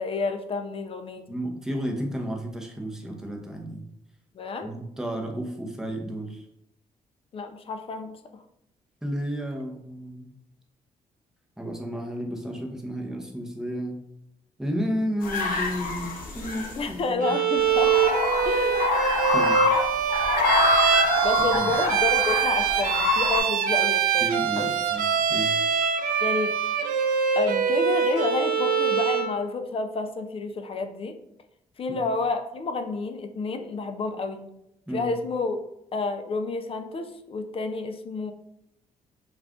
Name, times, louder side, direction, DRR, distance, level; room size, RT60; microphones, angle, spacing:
voice 1, 0.0-1.2 4.3-4.7 7.3-8.1 16.8-17.9 18.5-18.9 21.2-24.8 26.2-26.5 27.4-31.1 31.8-34.5 34.9-35.6 35.9-38.3, left 3 dB, 40° left, 7 dB, 0.4 m, -29 dB
voice 2, 1.3-3.8 4.6-6.4 9.0-10.3 11.6-14.0 14.6-17.4 19.2-19.6 21.5-21.7 24.2-25.5 31.9-32.0 34.9-35.1, equal, 5° right, 1 dB, 0.7 m, -32 dB
sound 1, 15.2-16.9 17.6-23.4, left 3 dB, 75° left, 0.7 m, -26 dB
Bowed string instrument, 17.2-29.4, right 7 dB, 80° right, 0.4 m, -24 dB
2.4 x 2.4 x 3.5 m, 0.79 s
cardioid pair, 80°, 14 cm